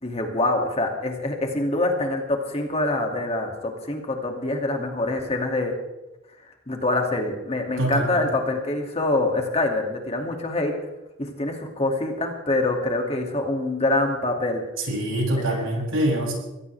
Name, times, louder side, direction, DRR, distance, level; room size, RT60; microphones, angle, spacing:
voice 1, 0.0-5.7 6.7-10.7 11.2-14.6 15.3-15.7, left 2 dB, 30° left, 2 dB, 2.4 m, -25 dB
voice 2, 7.8-8.2 14.9-16.3, right 1 dB, 90° right, -2 dB, 7.5 m, -24 dB
23.0 x 16.5 x 3.4 m, 1.0 s
head